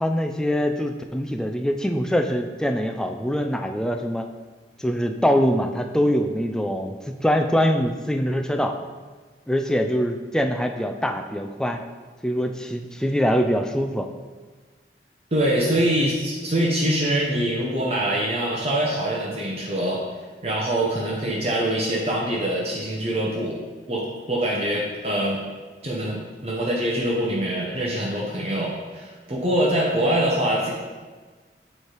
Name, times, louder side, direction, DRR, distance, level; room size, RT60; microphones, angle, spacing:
voice 1, 0.0-4.3 4.8-7.0 7.2-8.7 9.5-11.8 12.2-14.1, equal, 5° left, 5 dB, 0.3 m, -23 dB
voice 2, 15.3-20.0 20.4-23.6 23.9-25.4 25.8-30.7, right 1 dB, 35° right, -3 dB, 0.8 m, -24 dB
7.1 x 3.2 x 4.5 m, 1.4 s
head